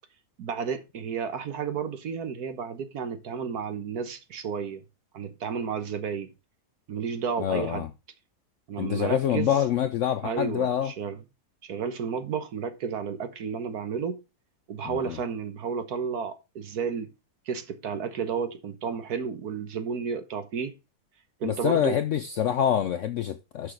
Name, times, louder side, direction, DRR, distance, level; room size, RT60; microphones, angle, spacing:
voice 1, 0.4-4.8 5.1-6.3 6.9-7.8 8.7-9.5 10.2-11.2 11.6-14.2 14.7-17.1 17.5-20.7 21.4-22.0, right 6 dB, 65° right, 1.5 m, -32 dB
voice 2, 7.4-7.9 8.8-10.9 14.8-15.2 21.4-23.7, left 9 dB, 70° left, 0.7 m, -26 dB
6.6 x 6.0 x 4.8 m
omnidirectional pair, 1.8 m